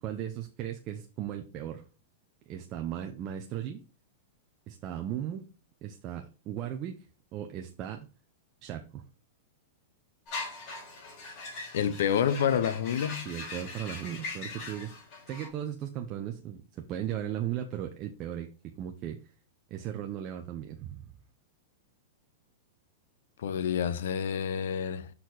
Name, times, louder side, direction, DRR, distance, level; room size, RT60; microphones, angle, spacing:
voice 1, 0.0-1.8 2.5-3.8 4.7-5.5 5.8-7.0 7.3-8.1 8.6-9.0 13.2-14.9 15.3-19.2 19.7-21.1, right 10 dB, 30° right, 0.7 m, -37 dB
sound 1, 10.3-15.5, left 3 dB, 40° left, 4.0 m, -41 dB
voice 2, 11.7-13.3 23.4-25.1, left 8 dB, 70° left, 0.7 m, -28 dB
6.4 x 4.2 x 4.0 m
supercardioid pair, 155°, 0 cm